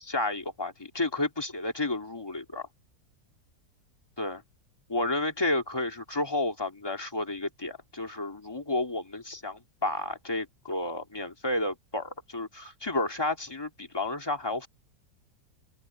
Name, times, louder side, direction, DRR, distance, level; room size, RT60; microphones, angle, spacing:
voice 1, 0.0-2.7 4.2-4.4 4.9-14.7, left 2 dB, 15° left, 2.4 m, -31 dB
omnidirectional pair, 1.8 m